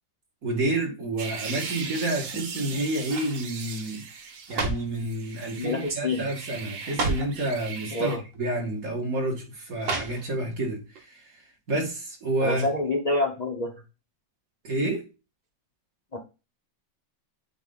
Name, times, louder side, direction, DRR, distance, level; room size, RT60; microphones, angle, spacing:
voice 1, 0.4-12.7 14.6-15.1, right 1 dB, 40° right, 2.4 m, -29 dB
sound 1, 1.2-4.6 4.9-8.2, right 5 dB, 80° right, 1.9 m, -39 dB
sound 2, 2.3-2.6 3.0-3.4 4.2-5.0 5.8-6.1 6.3-6.4 6.8-7.4 8.3-8.4 9.8-10.5 10.9-11.0, right 3 dB, 60° right, 2.1 m, -31 dB
voice 2, 5.6-6.3 7.9-8.2 12.4-13.8 16.1-16.2, left 2 dB, 85° left, 0.3 m, -27 dB
8.7 x 3.3 x 3.9 m
omnidirectional pair, 2.4 m